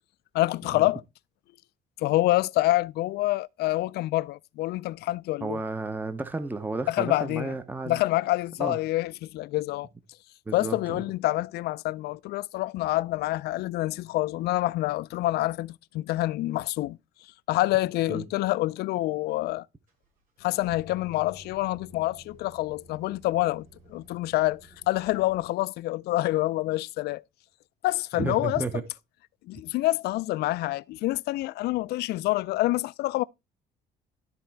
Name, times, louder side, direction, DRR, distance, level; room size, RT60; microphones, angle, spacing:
voice 1, 0.3-1.0 2.0-5.6 6.9-7.5 7.9-9.9 10.5-17.0 17.5-19.7 20.4-24.6 24.9-27.2 27.8-28.6 29.5-33.2, left 17 dB, 70° left, 0.4 m, -27 dB
voice 2, 5.4-8.0 8.6-8.8 10.5-11.0 18.1-18.2 28.1-28.8, right 3 dB, 10° right, 0.7 m, -32 dB
sound 1, 19.9-25.4, equal, 55° right, 5.6 m, -52 dB
12.5 x 4.2 x 4.5 m
cardioid pair, 110°, 17 cm